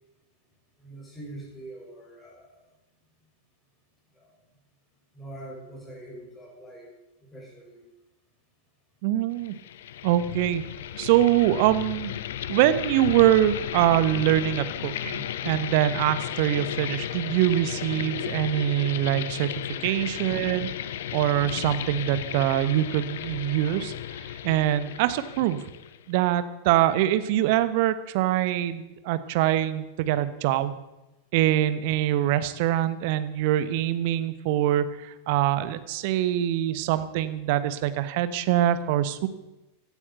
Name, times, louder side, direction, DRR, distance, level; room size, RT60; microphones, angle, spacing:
voice 1, 0.8-2.6 4.1-4.4 5.1-6.9 7.2-7.8, right 1 dB, 15° left, -1 dB, 7.0 m, -43 dB
voice 2, 9.0-9.5 10.0-10.6 11.0-12.1 12.5-19.5 19.8-20.7 21.1-23.9 24.4-25.6 26.1-30.7 31.3-39.3, right 13 dB, 50° right, 13 dB, 1.2 m, -24 dB
sound 1, 9.4-26.1, left 11 dB, 60° left, 0.9 m, -34 dB
16.5 x 12.5 x 7.0 m, 1.0 s
figure-of-eight pair, 90°, 0 cm